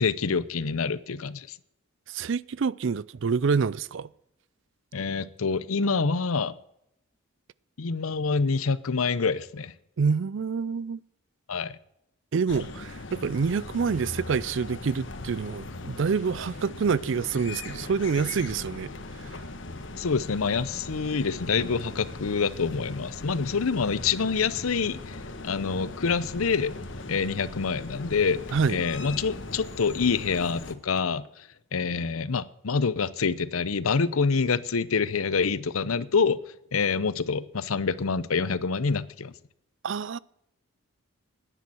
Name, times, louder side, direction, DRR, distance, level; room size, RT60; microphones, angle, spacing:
voice 1, 0.0-1.6 4.9-6.5 7.8-9.7 11.5-11.8 20.0-26.8 27.1-28.4 28.7-36.4 36.7-39.3, left 5 dB, 85° left, 0.7 m, -26 dB
voice 2, 2.1-4.1 10.0-11.0 12.3-18.9 28.5-28.8 39.8-40.2, right 5 dB, 60° right, 0.4 m, -27 dB
sound 1, 12.5-30.7, left 2 dB, 60° left, 1.3 m, -39 dB
10.5 x 10.0 x 7.8 m
head